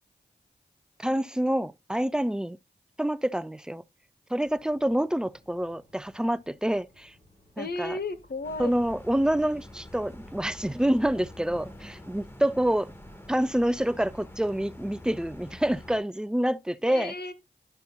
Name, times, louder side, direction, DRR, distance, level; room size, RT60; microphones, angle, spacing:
voice 1, 1.0-2.6 3.0-3.8 4.3-7.1 7.6-8.0 8.6-12.9 13.3-17.1, right 1 dB, 5° right, 0.4 m, -27 dB
sound 1, 4.4-14.0, left 1 dB, 35° left, 3.3 m, -61 dB
voice 2, 7.6-8.7 16.9-17.3, left 3 dB, 60° left, 1.0 m, -34 dB
sound 2, 8.4-16.0, left 1 dB, 10° left, 1.3 m, -46 dB
11.0 x 5.5 x 2.3 m
cardioid pair, 40°, 18 cm